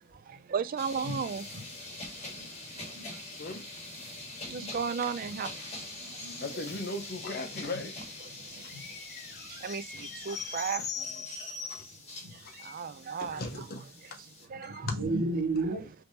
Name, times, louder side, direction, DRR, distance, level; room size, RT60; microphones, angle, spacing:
voice 1, 0.3-1.4 2.8-2.9 4.5-5.5 9.5-11.1 12.5-13.4 14.5-14.9, right 6 dB, 40° right, 0.3 m, -34 dB
sound 1, 0.8-14.4, left 3 dB, 30° left, 1.3 m, -42 dB
voice 2, 2.7-3.1 4.5-4.7 6.0-6.5 7.7-7.8 8.7-8.8 12.2-12.3 14.6-15.8, right 2 dB, 85° right, 1.4 m, -33 dB
voice 3, 6.4-8.0 8.4-10.9 12.3-12.7 13.2-13.8 14.1-14.2 14.6-15.0, left 2 dB, 45° left, 0.7 m, -40 dB
3.5 x 2.7 x 2.7 m
head